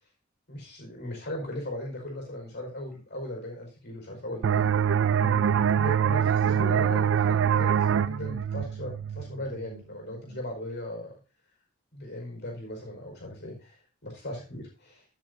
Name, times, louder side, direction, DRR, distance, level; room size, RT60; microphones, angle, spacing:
voice 1, 0.5-4.7 5.2-11.2 11.9-15.0, left 1 dB, 55° left, 1 dB, 5.0 m, -38 dB
sound 1, 4.4-9.8, right 8 dB, 60° right, 0.4 m, -24 dB
13.5 x 7.5 x 2.7 m, 0.36 s
head